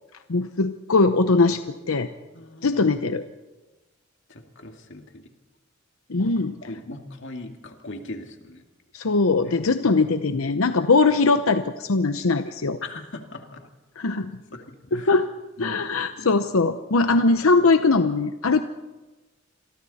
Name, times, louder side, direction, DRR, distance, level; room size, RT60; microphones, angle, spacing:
voice 1, 0.3-1.6 1.9-2.1 2.6-3.2 6.1-6.6 8.9-12.8 14.0-14.3 14.9-15.3 15.6-18.6, left 3 dB, 85° left, 9 dB, 0.8 m, -21 dB
voice 2, 2.3-2.7 4.3-5.3 6.2-6.3 6.6-8.6 12.8-13.6 14.5-15.1 15.6-15.8 16.2-16.3, left 2 dB, 60° left, 4 dB, 2.4 m, -39 dB
28.5 x 22.5 x 4.2 m, 1.2 s
head